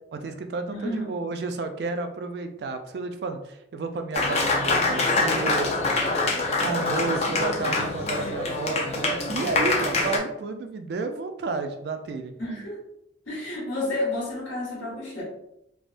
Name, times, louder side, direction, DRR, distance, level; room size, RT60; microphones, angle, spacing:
voice 1, 0.1-5.7 6.3-12.3, right 4 dB, 60° right, 7 dB, 0.3 m, -31 dB
voice 2, 0.7-1.1 12.4-12.8 13.2-15.2, left 1 dB, 85° left, -6 dB, 1.5 m, -30 dB
Applause, 4.1-10.2, left 2 dB, 35° left, 0.4 m, -25 dB
3.4 x 2.0 x 2.5 m, 0.80 s
head